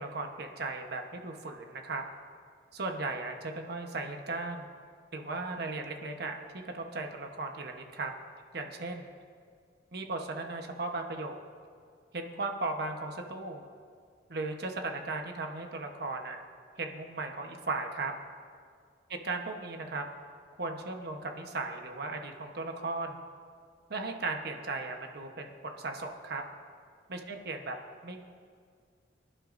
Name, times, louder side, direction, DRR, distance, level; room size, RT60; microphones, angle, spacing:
voice 1, 0.0-2.0 2.7-4.7 5.1-8.1 8.5-9.1 9.9-11.4 12.1-13.6 14.3-16.4 16.8-18.1 19.1-20.1 20.6-23.2 23.9-26.4 27.1-27.8 28.0-28.2, right 3 dB, 60° right, 4 dB, 1.1 m, -36 dB
25.0 x 11.0 x 2.6 m, 2.1 s
head